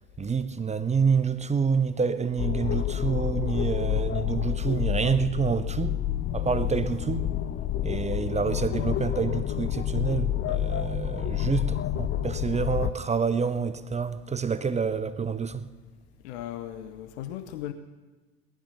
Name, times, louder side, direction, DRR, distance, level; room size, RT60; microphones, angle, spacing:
voice 1, 0.2-6.0 6.3-7.3 7.8-15.7, right 5 dB, 20° right, 0.7 m, -28 dB
sound 1, 2.4-12.9, left 12 dB, 35° left, 0.6 m, -29 dB
voice 2, 16.2-17.7, left 12 dB, 65° left, 0.8 m, -37 dB
18.0 x 11.5 x 6.9 m
figure-of-eight pair, 65°, 36 cm